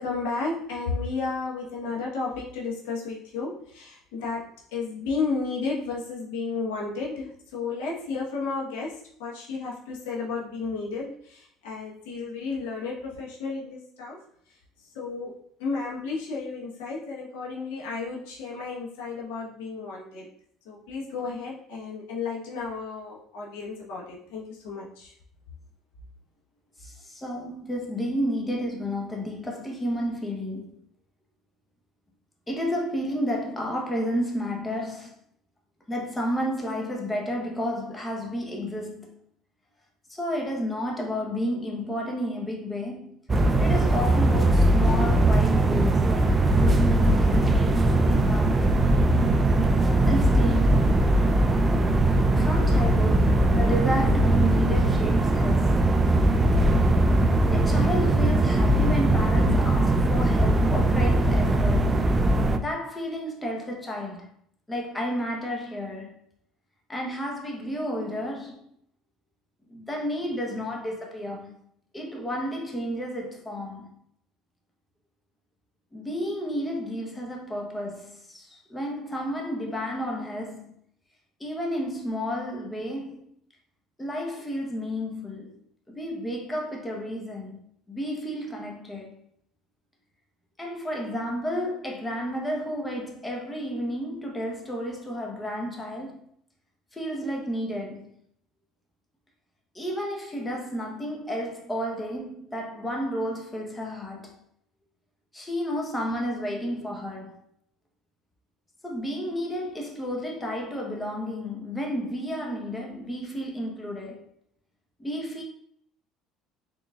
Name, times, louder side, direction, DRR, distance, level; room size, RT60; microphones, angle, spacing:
voice 1, 0.0-14.2 14.5-20.3 20.6-25.1, left 4 dB, 90° left, 1.1 m, -33 dB
voice 2, 26.8-30.7 32.5-35.1 35.9-39.2 40.1-43.2 43.6-48.6 50.1-50.9 52.3-55.9 57.5-62.0 62.5-64.3 64.7-66.2 66.9-68.7 69.7-71.6 71.9-74.0 75.9-80.8 81.4-83.3 84.0-85.6 85.9-87.6 87.9-89.2 90.6-96.2 96.9-98.1 99.7-104.4 105.3-107.4 108.8-114.3 115.0-115.4, equal, 15° left, 0.9 m, -31 dB
sound 1, 43.3-62.6, right 1 dB, 25° right, 0.4 m, -20 dB
3.9 x 3.8 x 2.3 m
supercardioid pair, 105°, 0 cm